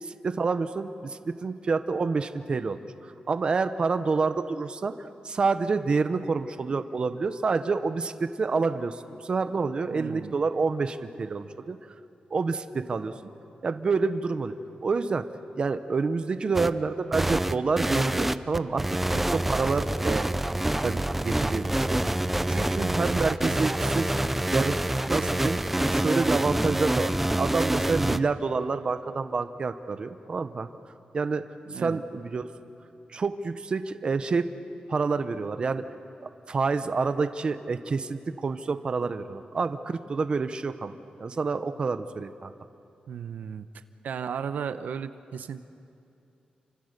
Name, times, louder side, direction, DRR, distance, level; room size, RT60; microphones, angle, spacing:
voice 1, 0.0-11.8 12.3-13.1 13.6-14.5 14.8-15.3 15.6-20.4 20.8-24.1 24.5-24.8 25.1-25.6 25.9-30.7 31.1-31.4 31.7-32.5 33.1-34.5 34.9-35.9 36.2-40.9 41.2-42.5, right 4 dB, 35° right, 10 dB, 0.9 m, -28 dB
voice 2, 9.9-10.3 31.7-32.0 43.1-43.7 44.0-45.7, right 7 dB, 85° right, 10 dB, 0.8 m, -35 dB
sound 1, 16.5-16.7 17.1-28.2, right 1 dB, 5° right, 0.5 m, -26 dB
29.5 x 25.5 x 6.7 m, 2.6 s
wide cardioid pair, 175°, 3 cm